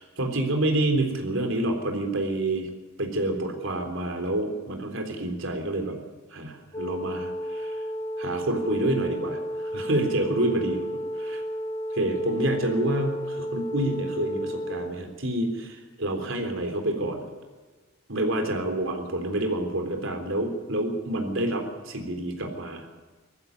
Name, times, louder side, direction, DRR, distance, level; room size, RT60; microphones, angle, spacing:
voice 1, 0.0-2.7 3.0-6.0 6.3-7.8 8.2-10.8 11.2-11.4 11.9-17.3 18.1-22.8, right 1 dB, 65° right, 4 dB, 3.7 m, -28 dB
sound 1, 6.7-14.9, equal, 25° left, 2.2 m, -32 dB
20.0 x 15.0 x 9.6 m, 1.4 s
head